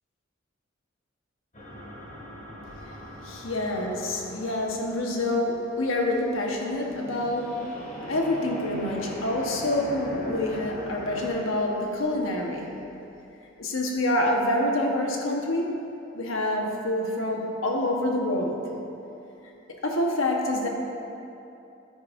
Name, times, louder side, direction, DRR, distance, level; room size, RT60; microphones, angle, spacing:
sound 1, 1.5-6.3 6.6-11.3, left 1 dB, 40° left, 2.0 m, -41 dB
voice 1, 3.2-7.7 8.0-12.8 13.6-15.9 16.1-18.7 19.7-20.7, left 1 dB, 75° left, 0 dB, 1.2 m, -27 dB
13.5 x 9.4 x 2.6 m, 2.8 s
head